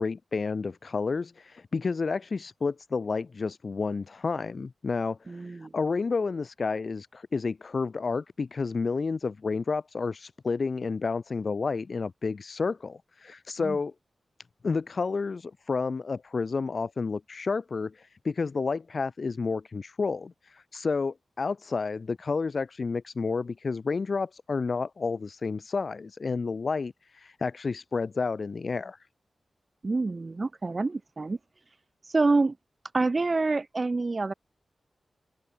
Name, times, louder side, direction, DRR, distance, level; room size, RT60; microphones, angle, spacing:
voice 1, 0.0-13.9 14.6-29.0, left 4 dB, 45° left, 2.4 m, -30 dB
voice 2, 5.3-5.7 13.6-13.8 29.8-31.4 31.7-31.8 32.0-32.6 32.9-34.3, right 3 dB, 30° right, 3.8 m, -27 dB
wide cardioid pair, 155°, 0 cm